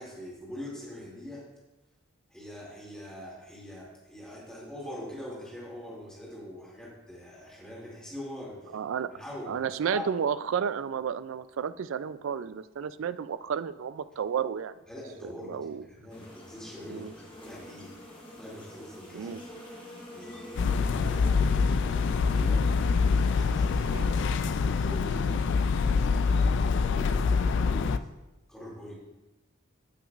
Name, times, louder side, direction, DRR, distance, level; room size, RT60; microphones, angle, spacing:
voice 1, 0.0-1.5 2.3-8.8 9.1-9.6 9.9-10.1 14.9-17.9 18.4-19.3 20.1-22.6 23.0-24.0 24.4-28.1 28.5-28.9, left 1 dB, 5° left, -6 dB, 2.5 m, -43 dB
voice 2, 8.7-9.1 9.5-14.7 15.5-15.8 16.9-17.1 19.1-19.4 23.9-24.1, right 7 dB, 60° right, 15 dB, 0.3 m, -32 dB
sound 1, 16.1-24.1, equal, 25° left, 1.3 m, -47 dB
sound 2, 20.6-28.0, left 5 dB, 55° left, 0.3 m, -25 dB
13.5 x 6.1 x 2.5 m, 1.0 s
head